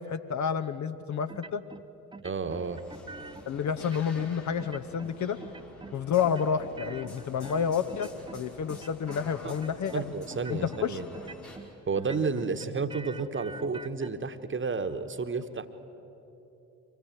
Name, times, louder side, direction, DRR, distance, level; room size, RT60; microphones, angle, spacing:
voice 1, 0.0-1.6 3.5-5.4 5.9-10.0 10.5-11.0, left 7 dB, 40° left, 10 dB, 1.0 m, -30 dB
sound 1, 1.3-1.8 2.1-3.5 3.8-4.3 4.6-5.1 5.4-6.0 6.2-8.4 8.7-9.2 9.5-10.0 10.3-10.8 11.1-11.7 12.0-14.1, right 3 dB, 10° right, 0.8 m, -45 dB
voice 2, 2.2-2.8 9.4-9.5 9.9-11.0 11.9-15.7, right 4 dB, 30° right, 10 dB, 1.4 m, -31 dB
sound 2, 2.4-11.6, left 2 dB, 85° left, 2.3 m, -49 dB
25.0 x 17.5 x 9.2 m, 2.9 s
figure-of-eight pair, 40°, 42 cm